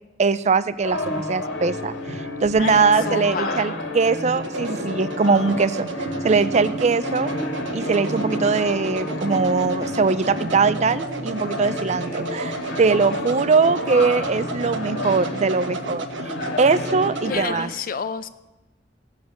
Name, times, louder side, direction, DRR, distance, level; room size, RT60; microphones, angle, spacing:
voice 1, 0.2-5.9 6.2-7.3 7.7-16.1 16.6-17.7, right 4 dB, 40° right, 15 dB, 0.5 m, -21 dB
sound 1, 0.8-17.7, left 1 dB, 80° left, 2.0 m, -31 dB
sound 2, 2.1-17.4, right 2 dB, 80° right, 1.3 m, -32 dB
voice 2, 2.6-3.7 17.3-18.3, left 5 dB, 50° left, 12 dB, 0.6 m, -29 dB
16.5 x 7.3 x 7.4 m, 1.1 s
head